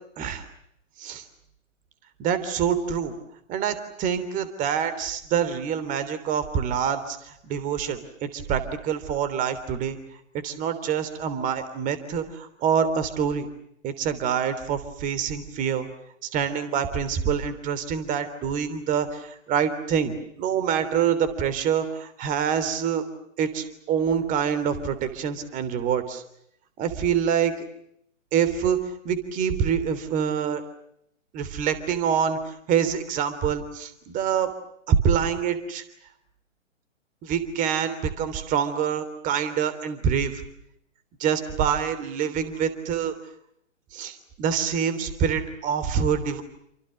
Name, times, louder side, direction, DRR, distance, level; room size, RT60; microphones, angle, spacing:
voice 1, 2.2-3.1 3.5-10.0 10.4-13.5 13.8-15.9 16.2-23.0 23.4-26.2 26.8-27.5 28.3-28.8 29.0-30.6 31.3-34.5 34.9-35.8 37.2-40.4 41.2-43.1 43.9-46.4, right 7 dB, 20° right, 13 dB, 3.3 m, -26 dB
29.0 x 27.5 x 6.6 m, 0.75 s
figure-of-eight pair, 130°, 39 cm